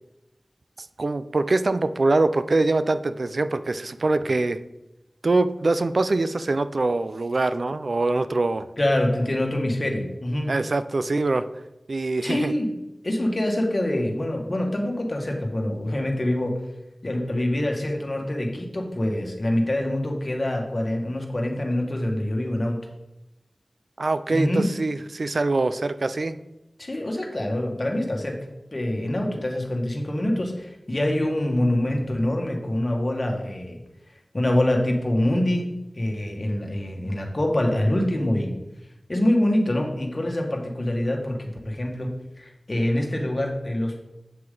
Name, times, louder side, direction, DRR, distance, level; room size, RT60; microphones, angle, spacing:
voice 1, 1.0-4.6 5.2-8.7 10.5-11.4 11.9-12.5 24.0-26.4, right 2 dB, 65° right, 13 dB, 0.4 m, -23 dB
voice 2, 8.8-10.6 12.2-12.7 13.0-16.6 17.0-22.8 24.3-24.7 26.8-28.4 28.7-33.8 34.3-38.5 39.1-44.0, left 1 dB, 45° left, 2 dB, 1.7 m, -25 dB
7.8 x 7.5 x 3.9 m, 0.95 s
wide cardioid pair, 60°, 0 cm